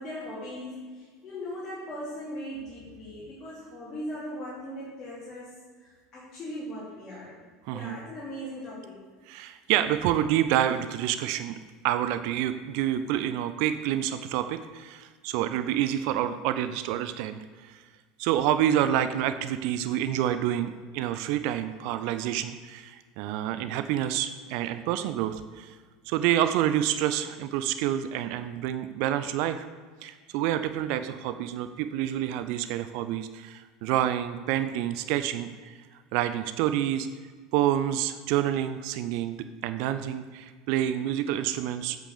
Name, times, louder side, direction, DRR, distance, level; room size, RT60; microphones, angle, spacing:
voice 1, 0.0-5.5 5.8-7.4 7.7-9.0, equal, 30° left, -7 dB, 2.8 m, -39 dB
voice 2, 7.7-8.0 9.3-11.6 11.8-17.8 18.2-25.8 26.1-29.6 30.0-35.8 36.1-37.1 37.5-42.0, right 11 dB, 55° right, 11 dB, 0.5 m, -28 dB
8.4 x 6.1 x 6.6 m, 1.5 s
figure-of-eight pair, 75°, 0 cm